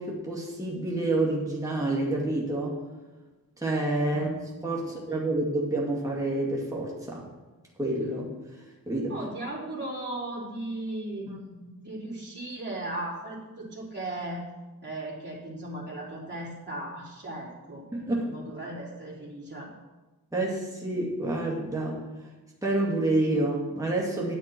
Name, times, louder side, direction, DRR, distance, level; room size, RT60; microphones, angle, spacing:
voice 1, 0.0-2.8 3.6-4.3 4.6-7.3 7.8-8.3 8.9-9.1 11.3-11.4 17.9-18.4 20.3-22.0 22.6-24.3, right 2 dB, 10° right, -4 dB, 2.1 m, -28 dB
voice 2, 9.1-14.4 14.8-17.8 18.3-19.7, right 1 dB, 30° right, -7 dB, 3.4 m, -37 dB
9.9 x 9.3 x 4.5 m, 1.2 s
wide cardioid pair, 70°, 35 cm